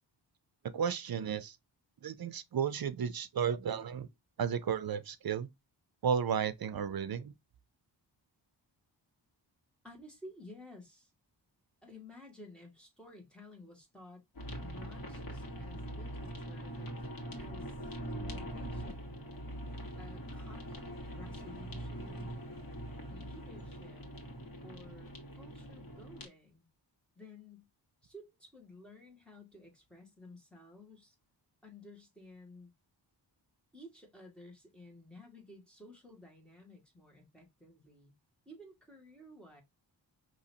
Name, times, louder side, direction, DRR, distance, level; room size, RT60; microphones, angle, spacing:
voice 1, 0.7-1.6 2.0-4.1 4.4-5.5 6.0-7.3, right 7 dB, 55° right, 0.6 m, -33 dB
voice 2, 9.8-11.1 11.8-14.2 14.6-17.1 17.4-19.2 20.0-22.4 23.1-24.1 24.6-26.7 27.2-27.7 28.0-31.2 31.6-32.7 33.7-38.1 38.5-39.6, left 1 dB, ahead, 1.9 m, -54 dB
sound 1, 14.3-26.3, right 1 dB, 50° left, 1.5 m, -43 dB
5.5 x 2.9 x 2.8 m
wide cardioid pair, 145°, 44 cm